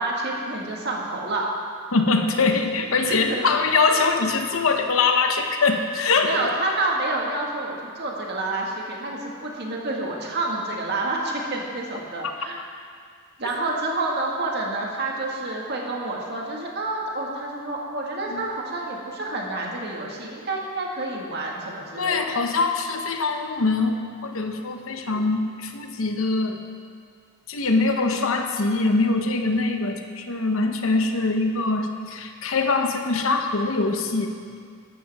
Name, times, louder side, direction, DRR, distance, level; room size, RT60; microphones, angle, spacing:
voice 1, 0.0-1.5 3.0-3.5 6.2-12.6 13.4-22.2, right 2 dB, 50° right, -2 dB, 1.8 m, -28 dB
voice 2, 1.9-6.3 18.3-18.4 22.0-24.0 24.2-26.6 27.5-34.3, left 3 dB, 65° left, 5 dB, 1.0 m, -23 dB
13.0 x 12.5 x 3.6 m, 2.2 s
head